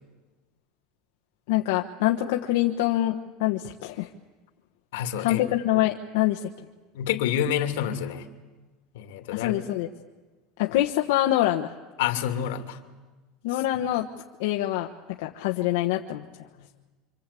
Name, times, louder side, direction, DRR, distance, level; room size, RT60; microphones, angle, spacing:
voice 1, 1.5-4.1 5.2-6.5 9.3-9.9 10.6-11.7 13.4-14.1 14.4-14.9 15.2-16.2, left 14 dB, 75° left, 2 dB, 1.3 m, -25 dB
voice 2, 4.9-5.5 6.9-8.2 8.9-9.5 12.0-12.8, left 10 dB, 90° left, 6 dB, 2.7 m, -28 dB
26.0 x 26.0 x 8.5 m, 1.3 s
cardioid pair, 175°, 0 cm